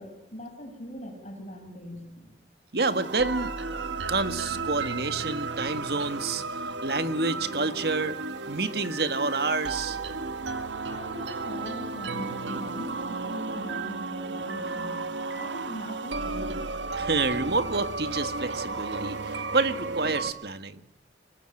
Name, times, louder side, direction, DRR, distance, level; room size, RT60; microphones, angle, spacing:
voice 1, 0.0-2.4 10.9-15.0 15.3-16.6, equal, 40° left, 3 dB, 6.9 m, -41 dB
voice 2, 2.7-3.5 4.1-8.2 8.5-10.0 17.0-20.8, right 3 dB, 60° right, 10 dB, 1.6 m, -28 dB
sound 1, 2.8-20.3, right 3 dB, 85° right, 1.7 m, -33 dB
24.5 x 20.5 x 9.2 m, 0.77 s
head